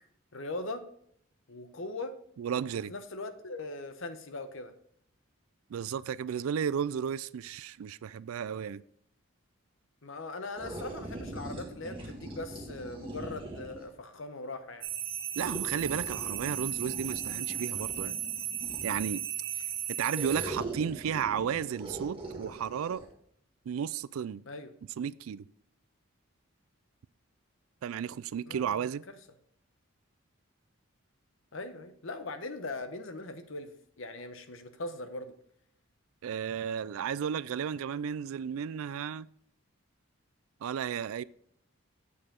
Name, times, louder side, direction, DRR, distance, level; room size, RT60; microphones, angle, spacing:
voice 1, 0.3-0.8 1.5-2.1 2.7-4.7 10.0-15.0 24.5-24.7 28.5-28.9 31.5-35.3, left 2 dB, 65° left, 0.9 m, -40 dB
voice 2, 2.4-2.9 5.7-8.8 15.4-18.2 18.8-19.2 19.9-23.0 23.7-24.4 25.0-25.5 27.8-29.0 36.2-39.3 40.6-41.2, right 8 dB, 80° right, 0.3 m, -33 dB
sound 1, 10.6-13.9 15.3-19.2 20.1-23.1, right 2 dB, 25° right, 2.0 m, -42 dB
sound 2, 14.8-20.5, right 11 dB, 65° right, 0.8 m, -35 dB
8.5 x 6.7 x 3.7 m
head